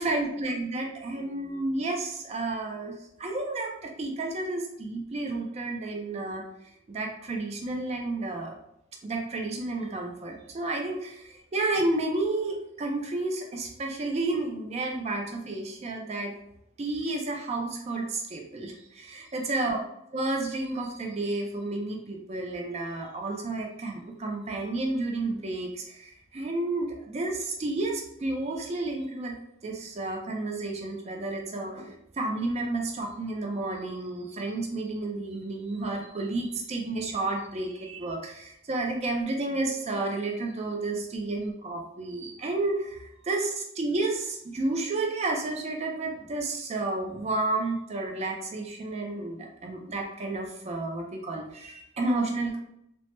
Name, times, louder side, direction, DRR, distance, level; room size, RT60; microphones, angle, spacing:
voice 1, 0.0-8.6 9.0-16.3 16.8-19.8 20.1-29.4 29.6-52.6, right 2 dB, 30° right, 2 dB, 0.4 m, -31 dB
3.0 x 2.0 x 3.1 m, 0.77 s
head